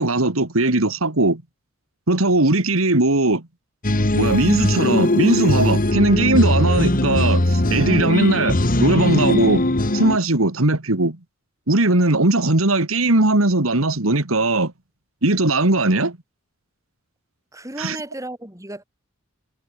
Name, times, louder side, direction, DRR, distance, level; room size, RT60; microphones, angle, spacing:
voice 1, 0.0-1.4 2.1-3.4 4.1-11.2 11.7-14.7 15.2-16.2 17.8-18.0, right 2 dB, 90° right, 2.3 m, -19 dB
sound 1, 3.8-10.2, left 1 dB, 45° left, 1.8 m, -20 dB
voice 2, 17.5-18.8, right 1 dB, 15° right, 5.7 m, -34 dB
head